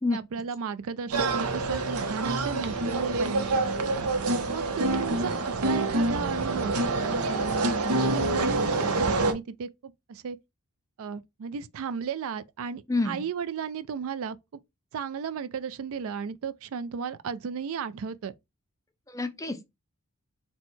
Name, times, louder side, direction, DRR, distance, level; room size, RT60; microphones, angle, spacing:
voice 1, 0.1-3.6 4.5-10.4 11.0-14.4 14.9-18.3, right 6 dB, 65° right, 0.4 m, -35 dB
sound 1, 1.1-9.3, right 2 dB, 85° right, 0.7 m, -26 dB
voice 2, 12.9-13.2 19.1-19.7, left 3 dB, 15° left, 0.5 m, -28 dB
4.1 x 2.2 x 4.3 m
head